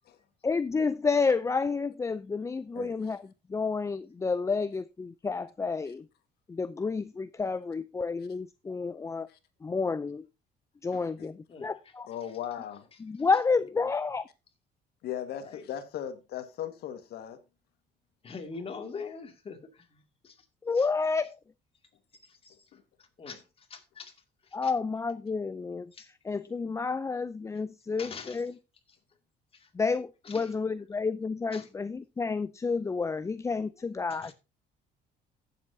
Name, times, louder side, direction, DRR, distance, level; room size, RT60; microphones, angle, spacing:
voice 1, 0.4-3.2 3.5-6.1 6.5-9.3 9.6-10.3 10.8-12.1 13.0-14.2 20.6-21.4 24.5-25.9 26.2-28.5 29.7-34.3, left 4 dB, 15° left, 0.4 m, -30 dB
voice 2, 10.9-11.3 12.1-12.9 15.0-17.4 22.7-22.8, left 10 dB, 70° left, 1.6 m, -38 dB
voice 3, 18.2-20.4 20.7-20.9 22.2-22.6 23.2-24.1 24.4-24.7 25.9-26.1 28.0-28.4 29.5-29.7 30.2-30.5 31.5-31.7 34.0-34.3, left 5 dB, 35° left, 2.3 m, -44 dB
15.5 x 7.5 x 2.7 m
cardioid pair, 110°, 17 cm